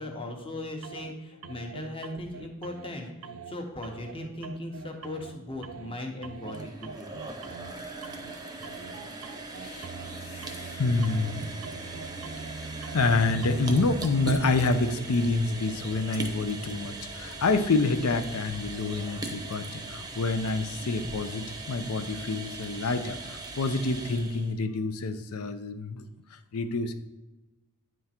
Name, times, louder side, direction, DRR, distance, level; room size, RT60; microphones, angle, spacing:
voice 1, 0.0-3.1 3.5-7.1, left 1 dB, 25° left, 3 dB, 1.0 m, -38 dB
sound 1, 0.8-1.1 1.4-2.9 3.2-3.5 3.8-5.3 5.6-5.9 6.2-7.7 8.0-8.3 8.6-15.0, right 4 dB, 65° right, 0.4 m, -42 dB
sound 2, 6.4-24.5, right 2 dB, 20° right, 0.7 m, -40 dB
voice 2, 8.6-9.9 10.2-26.9, left 3 dB, 70° left, 10 dB, 0.6 m, -28 dB
9.2 x 3.7 x 4.3 m, 1.1 s
head